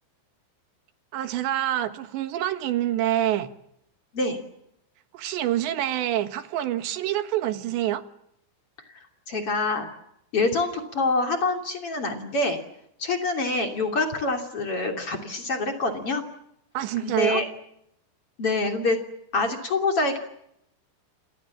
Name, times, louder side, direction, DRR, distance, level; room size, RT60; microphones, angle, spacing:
voice 1, 1.1-3.5 5.1-8.0 16.8-17.4, right 12 dB, 80° right, 3.7 m, -26 dB
voice 2, 9.3-9.9 10.3-12.6 13.0-16.2 17.0-17.4 18.4-19.0 19.3-20.2, left 3 dB, 35° left, 3.3 m, -25 dB
29.5 x 27.0 x 7.4 m
omnidirectional pair, 5.1 m